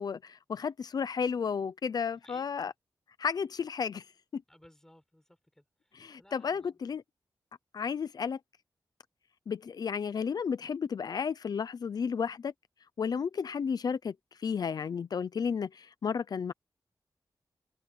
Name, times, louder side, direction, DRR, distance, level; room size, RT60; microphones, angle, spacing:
voice 1, 0.0-2.7 3.2-4.1 4.3-4.4 5.9-7.0 7.7-8.4 9.5-12.5 13.0-16.5, left 6 dB, 65° left, 0.7 m, -33 dB
voice 2, 4.5-6.8, left 1 dB, 5° left, 6.9 m, -60 dB
wide cardioid pair, 145°, 7 cm